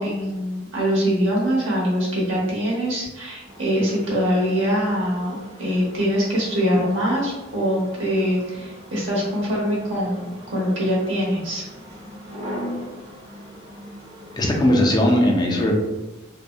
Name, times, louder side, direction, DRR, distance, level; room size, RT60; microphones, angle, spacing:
voice 1, 0.0-11.7, equal, 80° right, -4 dB, 0.9 m, -23 dB
sound 1, 3.4-15.1, equal, 55° right, 0.9 m, -40 dB
voice 2, 14.4-15.7, left 1 dB, 20° left, 0 dB, 0.3 m, -18 dB
2.6 x 2.1 x 2.3 m, 1.1 s
head